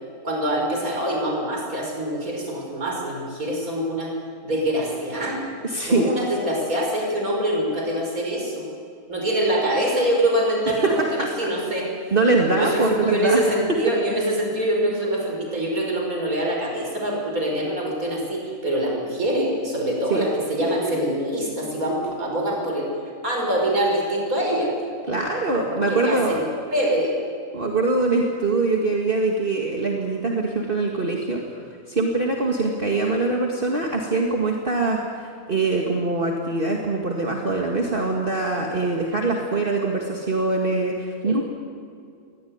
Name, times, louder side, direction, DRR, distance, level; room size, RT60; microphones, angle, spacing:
voice 1, 0.2-4.1 4.4-5.5 5.8-8.7 9.1-11.9 12.5-22.9 23.2-24.7 25.7-26.4 26.7-27.1 28.1-28.2 41.2-41.4, right 1 dB, 85° right, 0 dB, 6.0 m, -24 dB
voice 2, 5.6-6.1 10.8-10.9 11.2-11.3 12.1-13.4 20.1-20.3 25.1-26.4 27.5-31.4 31.9-41.4, right 3 dB, 40° right, 0 dB, 2.2 m, -23 dB
23.0 x 19.5 x 9.6 m, 2.4 s
omnidirectional pair, 1.4 m